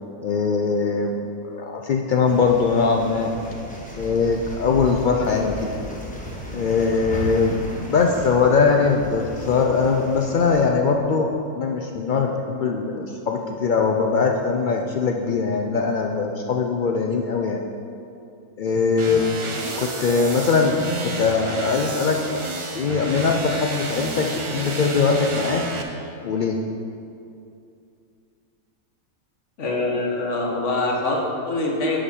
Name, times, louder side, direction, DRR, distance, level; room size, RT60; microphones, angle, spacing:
voice 1, 0.2-3.3 4.0-5.5 6.5-17.6 18.6-19.4 19.8-22.5 22.7-25.6 26.2-26.6, left 5 dB, 80° left, 2 dB, 0.4 m, -21 dB
sound 1, 2.2-10.7, equal, 5° left, 1.0 m, -35 dB
sound 2, 19.0-25.8, right 2 dB, 45° right, 0.4 m, -30 dB
voice 2, 29.6-32.0, left 2 dB, 65° left, -1 dB, 1.5 m, -24 dB
9.7 x 5.2 x 4.2 m, 2.5 s
omnidirectional pair, 1.4 m